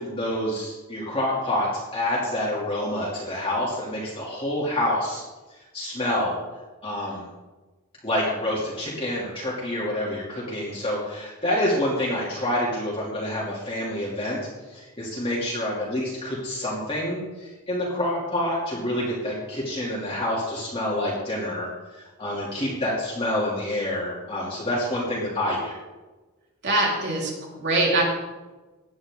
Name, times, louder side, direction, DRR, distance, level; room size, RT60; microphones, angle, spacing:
voice 1, 0.0-5.2 5.7-6.4 6.8-7.3 8.0-14.4 14.7-25.8, left 1 dB, 25° left, -6 dB, 2.7 m, -27 dB
voice 2, 26.6-28.0, right 2 dB, 50° right, -3 dB, 4.1 m, -23 dB
17.5 x 10.5 x 3.7 m, 1.2 s
head